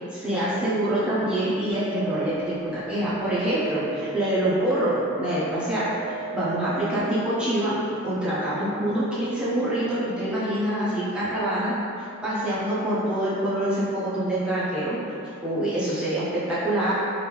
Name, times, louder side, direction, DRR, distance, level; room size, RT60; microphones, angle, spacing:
voice 1, 0.1-5.9 6.3-7.8 8.0-11.7 12.2-15.0 15.4-16.9, right 1 dB, 5° right, -10 dB, 0.5 m, -25 dB
sound 1, 1.7-7.0, right 3 dB, 60° right, 0.4 m, -36 dB
3.0 x 2.5 x 3.3 m, 2.7 s
head